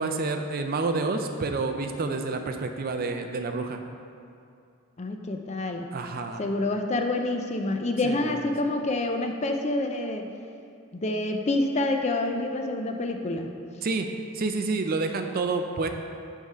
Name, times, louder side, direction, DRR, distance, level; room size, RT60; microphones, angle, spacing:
voice 1, 0.0-3.8 5.9-6.4 8.0-8.4 13.8-14.1 14.3-15.9, right 3 dB, 40° right, 6 dB, 0.4 m, -29 dB
voice 2, 5.0-5.9 6.4-10.3 10.9-13.5, left 2 dB, 30° left, 4 dB, 0.4 m, -27 dB
9.3 x 3.7 x 5.5 m, 2.4 s
head